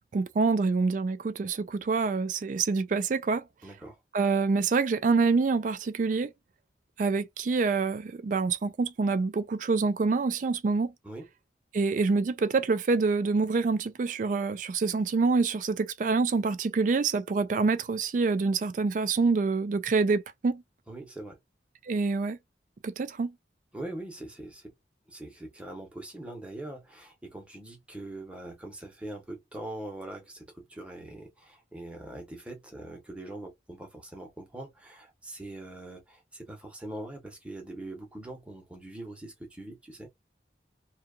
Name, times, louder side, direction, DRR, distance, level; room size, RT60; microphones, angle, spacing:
voice 1, 0.1-3.4 4.1-6.3 7.0-10.9 11.7-20.6 21.9-22.4 22.8-23.3, right 4 dB, 45° right, 0.3 m, -26 dB
voice 2, 3.6-4.0 11.0-11.3 20.9-21.4 23.7-24.7 25.1-40.1, right 1 dB, 5° right, 0.8 m, -42 dB
2.7 x 2.3 x 2.3 m
head